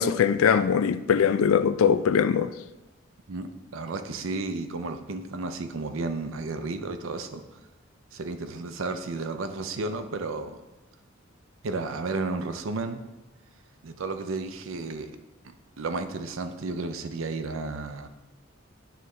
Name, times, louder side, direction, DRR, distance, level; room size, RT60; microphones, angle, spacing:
voice 1, 0.0-2.5, left 7 dB, 85° left, 0.3 m, -21 dB
voice 2, 3.3-7.4 8.1-10.6 11.6-13.0 13.8-15.1 15.8-18.1, right 3 dB, 80° right, 0.6 m, -32 dB
9.2 x 4.0 x 3.2 m
head